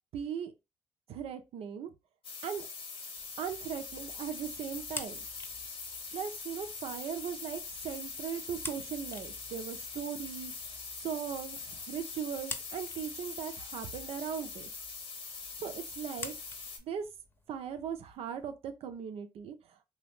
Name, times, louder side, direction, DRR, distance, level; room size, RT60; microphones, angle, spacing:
voice 1, 0.1-0.5 1.1-1.9 2.4-2.7 3.4-5.2 6.1-10.8 11.0-14.7 15.6-16.3 16.8-17.1 17.5-19.8, right 8 dB, 80° right, 0.5 m, -38 dB
sound 1, 2.2-16.8, left 4 dB, 65° left, 0.8 m, -43 dB
sound 2, 3.1-18.5, left 2 dB, 20° left, 0.7 m, -50 dB
2.8 x 2.3 x 3.4 m
supercardioid pair, 65°, 10 cm